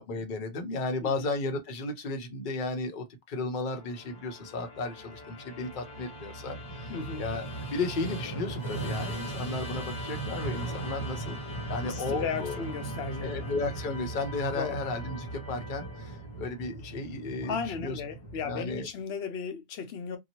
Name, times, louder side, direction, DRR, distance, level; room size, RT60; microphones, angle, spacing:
voice 1, 0.0-11.4 11.7-12.6 13.2-18.0 18.4-18.9, left 3 dB, 55° left, 0.8 m, -34 dB
Musical instrument, 3.7-19.0, right 2 dB, 25° left, 1.0 m, -38 dB
voice 2, 6.9-7.2 11.8-13.5 14.5-14.8 17.4-20.2, left 6 dB, 85° left, 0.9 m, -35 dB
2.8 x 2.3 x 2.8 m
omnidirectional pair, 1.0 m